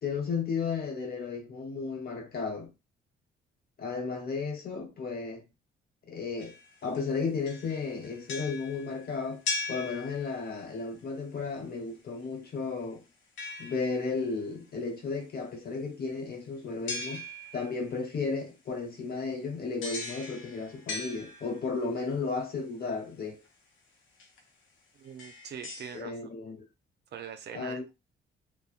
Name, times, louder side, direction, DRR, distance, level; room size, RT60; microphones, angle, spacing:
voice 1, 0.0-2.7 3.8-5.4 6.1-6.5 6.8-9.4 9.7-13.0 13.6-17.2 17.5-23.4 25.9-26.6 27.5-27.8, left 4 dB, 50° left, 1.0 m, -34 dB
sound 1, 6.4-7.1 7.4-10.7 13.4-14.2 16.9-17.8 19.8-21.9 23.4-23.5 24.2-24.4 25.0-26.0, left 3 dB, 80° left, 0.8 m, -39 dB
voice 2, 25.0-26.1 27.1-27.9, right 7 dB, 55° right, 0.5 m, -42 dB
3.0 x 2.0 x 2.4 m
cardioid pair, 90°, 20 cm